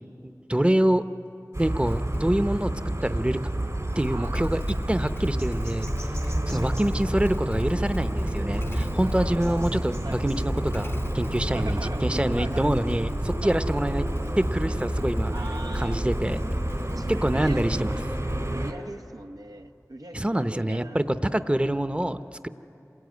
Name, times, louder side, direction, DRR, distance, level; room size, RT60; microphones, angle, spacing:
voice 1, 0.2-1.0 1.6-2.7 3.0-3.4 4.0-4.6 4.9-5.9 6.5-14.0 14.4-15.3 15.7-16.4 17.1-18.0 20.1-22.2, right 1 dB, 15° right, 10 dB, 0.8 m, -26 dB
sound 1, 1.5-18.7, right 1 dB, 55° right, 3.1 m, -30 dB
Motorcycle / Engine starting, 1.9-2.5 3.9-18.8, left 1 dB, 40° left, 0.7 m, -35 dB
voice 2, 4.1-4.6 6.5-6.8 9.0-9.7 10.0-10.2 11.5-12.7 13.4-13.6 15.3-16.0 16.9-17.6 18.5-21.0 21.5-21.8, right 2 dB, 75° right, 5 dB, 0.9 m, -41 dB
27.0 x 18.5 x 9.5 m, 2.7 s
wide cardioid pair, 40°, 6 cm